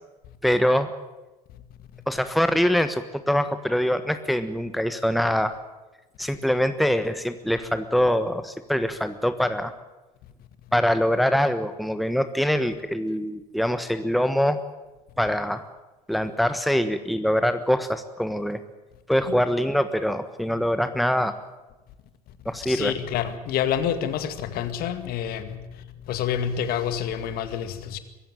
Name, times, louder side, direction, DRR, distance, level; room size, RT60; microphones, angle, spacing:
voice 1, 0.4-0.9 2.1-5.5 6.2-9.7 10.7-14.6 15.2-15.6 16.1-18.6 19.1-21.3 22.4-22.9, equal, ahead, 1.3 m, -24 dB
voice 2, 22.7-25.6 26.1-28.0, left 9 dB, 50° left, 2.1 m, -28 dB
23.5 x 15.0 x 9.1 m
figure-of-eight pair, 70°, 20 cm